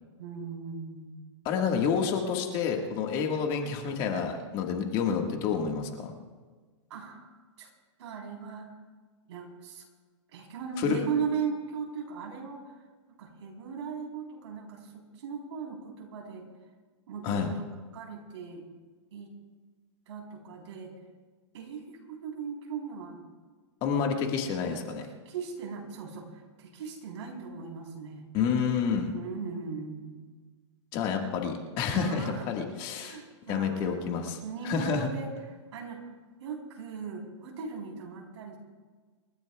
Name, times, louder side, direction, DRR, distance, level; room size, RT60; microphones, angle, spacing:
voice 1, 0.2-1.3 6.9-7.3 7.6-7.7 8.0-8.7 9.3-9.8 10.3-12.7 13.2-16.5 17.1-17.6 17.9-18.6 19.1-19.3 20.1-20.9 21.5-23.2 24.5-26.3 26.6-28.3 29.1-30.3 31.9-32.6 33.0-34.1 34.4-35.3 35.7-36.0 36.4-38.6, right 6 dB, 65° right, 0 dB, 3.9 m, -38 dB
voice 2, 1.4-6.1 10.8-11.0 17.2-17.5 23.8-25.0 28.3-29.1 30.9-33.2 33.5-34.4 34.6-35.1, left 6 dB, 30° left, 2 dB, 1.7 m, -29 dB
28.0 x 13.5 x 2.3 m, 1.4 s
hypercardioid pair, 155°, 16 cm